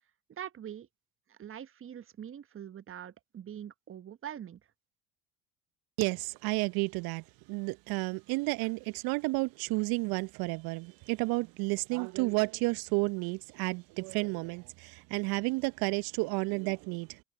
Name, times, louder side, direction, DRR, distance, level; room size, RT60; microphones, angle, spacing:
voice 1, 0.3-0.9 1.3-4.6, right 9 dB, 30° right, 1.2 m, -43 dB
voice 2, 6.0-17.2, right 26 dB, 55° right, 0.9 m, -31 dB
figure-of-eight pair, 65°, 43 cm